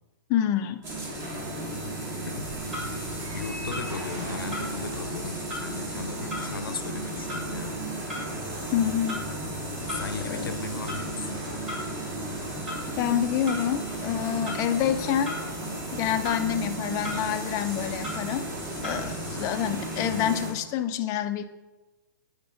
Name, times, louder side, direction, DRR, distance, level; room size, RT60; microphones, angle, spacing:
voice 1, 0.3-0.8 8.7-9.2 10.2-10.5 13.0-15.4 15.9-18.5 18.8-21.4, left 10 dB, 30° left, 8 dB, 0.5 m, -27 dB
sound 1, 0.8-20.5, right 1 dB, 25° right, 1.9 m, -34 dB
Clock, 2.3-19.5, left 1 dB, 5° right, 1.6 m, -41 dB
voice 2, 2.9-7.8 9.9-11.5 19.3-19.7, left 5 dB, 85° left, 10 dB, 0.7 m, -37 dB
8.6 x 5.1 x 3.8 m, 1.1 s
hypercardioid pair, 130°, 11 cm